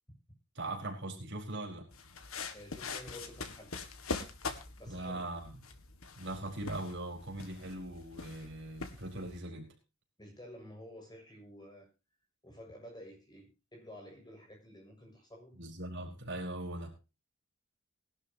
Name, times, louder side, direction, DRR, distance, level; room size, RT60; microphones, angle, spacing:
voice 1, 0.5-1.9 4.9-5.5 6.1-9.7 15.6-16.9, right 1 dB, 55° right, 0 dB, 4.6 m, -40 dB
sound 1, 1.9-9.4, left 4 dB, 75° left, 1.9 m, -43 dB
voice 2, 2.5-3.8 4.8-5.3 10.2-11.9 12.4-15.6, equal, 20° left, 1 dB, 6.8 m, -51 dB
20.5 x 12.0 x 2.9 m, 0.30 s
head